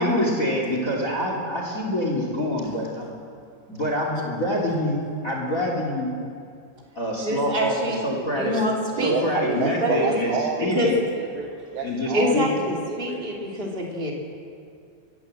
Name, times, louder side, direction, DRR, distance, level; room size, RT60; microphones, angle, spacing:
voice 1, 0.0-3.1 3.7-6.1 6.9-8.6 9.0-11.0 11.8-12.7, left 1 dB, 25° left, 0 dB, 2.1 m, -26 dB
voice 2, 7.2-8.0 8.3-9.1 9.8-10.1 10.6-10.9 12.1-14.1, equal, 20° right, -1 dB, 1.4 m, -26 dB
voice 3, 9.0-10.9 11.2-13.2, right 6 dB, 85° right, 3 dB, 2.0 m, -29 dB
25.0 x 14.5 x 7.7 m, 2.4 s
omnidirectional pair, 5.9 m